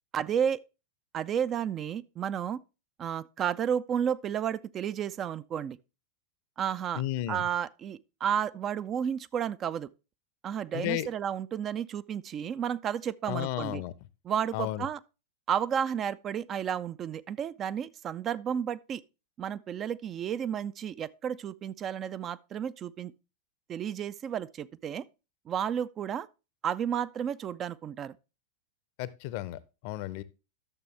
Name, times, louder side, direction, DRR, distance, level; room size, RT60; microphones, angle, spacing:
voice 1, 0.1-0.6 1.1-2.6 3.0-5.8 6.6-7.0 7.3-9.9 10.4-13.8 14.2-15.0 15.5-19.0 19.4-23.1 23.7-25.0 25.5-26.3 26.6-28.1, right 8 dB, 30° right, 0.4 m, -32 dB
voice 2, 7.0-7.4 10.7-11.1 13.3-13.9 14.5-14.9 29.0-30.2, left 14 dB, 45° left, 0.6 m, -33 dB
12.0 x 6.8 x 3.3 m
figure-of-eight pair, 90°, 0 cm